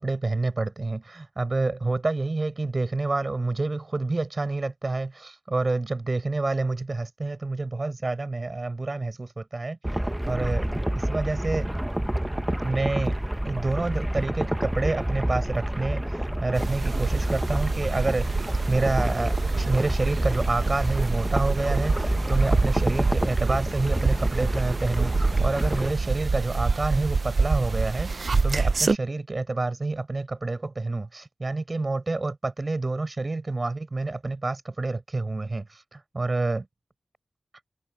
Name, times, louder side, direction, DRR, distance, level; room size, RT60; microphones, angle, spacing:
voice 1, 0.0-9.9 10.3-10.7 10.9-11.7 12.6-13.2 13.4-18.4 18.7-28.1 28.4-36.7, right 3 dB, 40° right, 7.4 m, -28 dB
sound 1, 9.8-25.9, right 1 dB, 10° right, 0.9 m, -28 dB
sound 2, 16.5-29.0, right 4 dB, 55° right, 0.7 m, -26 dB
open air
wide cardioid pair, 90°, 0 cm